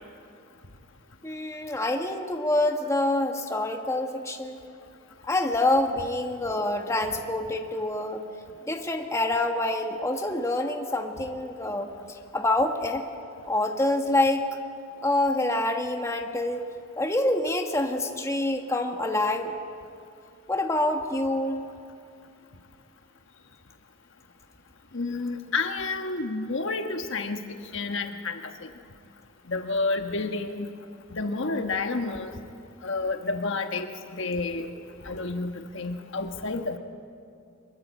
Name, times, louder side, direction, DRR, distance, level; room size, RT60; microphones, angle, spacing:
voice 1, 1.2-4.6 5.3-8.2 8.7-11.9 12.3-13.1 13.4-14.5 15.0-16.6 17.0-19.6 20.5-21.7, left 1 dB, 15° left, 3 dB, 1.4 m, -26 dB
voice 2, 24.9-27.4 27.7-28.7 29.5-30.7 31.1-32.3 32.8-33.9 34.2-34.7 35.0-36.8, left 3 dB, 60° left, 6 dB, 1.3 m, -30 dB
24.5 x 22.5 x 8.3 m, 2.5 s
head